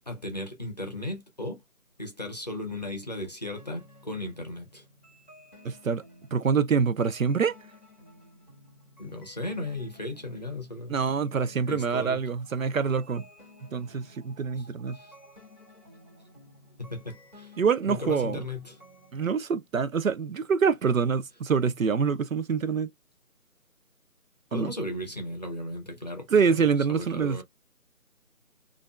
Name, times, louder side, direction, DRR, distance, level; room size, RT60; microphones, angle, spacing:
voice 1, 0.0-1.6 2.0-4.8 9.0-11.0 11.7-12.2 14.6-14.7 14.9-15.1 16.8-17.5 17.8-18.8 24.5-26.6 26.9-27.4, left 1 dB, 30° left, 0.7 m, -36 dB
sound 1, 3.6-19.3, left 1 dB, 5° right, 1.2 m, -54 dB
voice 2, 5.6-6.0 6.3-7.5 10.9-13.2 13.7-15.0 17.6-18.4 19.1-22.9 24.5-24.7 26.3-27.4, right 6 dB, 65° right, 0.5 m, -25 dB
5.1 x 2.5 x 2.2 m
figure-of-eight pair, 160°, 45 cm